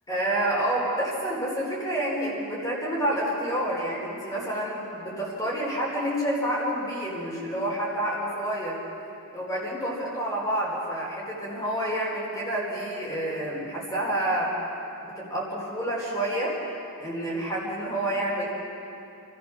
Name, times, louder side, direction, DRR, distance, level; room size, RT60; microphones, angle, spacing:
voice 1, 0.1-8.8 9.3-14.5 15.0-16.5 17.0-18.5, right 1 dB, 15° left, -5 dB, 4.5 m, -28 dB
29.5 x 15.0 x 6.3 m, 2.8 s
head